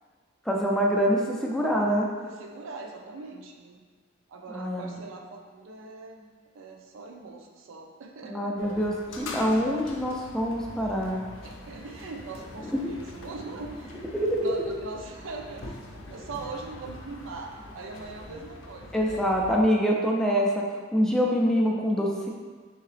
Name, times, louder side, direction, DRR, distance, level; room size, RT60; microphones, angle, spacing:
voice 1, 0.5-2.1 4.5-4.9 8.3-11.2 14.1-14.5 18.9-20.6 20.9-22.3, equal, 5° left, -2 dB, 0.3 m, -25 dB
voice 2, 2.1-3.8 4.3-6.3 6.5-8.9 11.4-15.8 16.1-19.3, right 3 dB, 80° right, 2 dB, 0.4 m, -41 dB
sound 1, 8.6-19.7, left 1 dB, 75° left, 0.5 m, -44 dB
3.6 x 2.8 x 3.2 m, 1.5 s
head